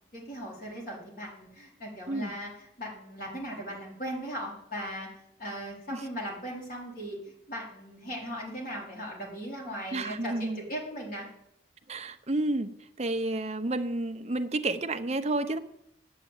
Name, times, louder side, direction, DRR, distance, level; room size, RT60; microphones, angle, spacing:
voice 1, 0.1-5.1 5.4-7.2 7.5-11.3, equal, 45° left, -3 dB, 4.4 m, -38 dB
voice 2, 9.9-10.6 11.9-12.7 13.0-15.6, right 2 dB, 35° right, 7 dB, 0.8 m, -30 dB
9.2 x 8.0 x 9.0 m, 0.76 s
head